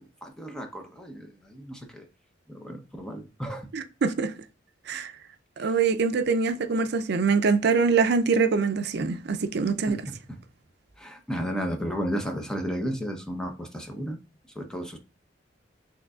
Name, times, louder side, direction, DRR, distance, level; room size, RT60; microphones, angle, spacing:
voice 1, 0.0-2.1 2.5-3.7 9.9-10.4 11.0-14.2 14.6-15.0, equal, 5° left, 0.7 m, -33 dB
voice 2, 3.7-4.3 4.9-5.1 5.6-10.0, right 5 dB, 60° right, 0.5 m, -24 dB
6.2 x 3.2 x 2.4 m
head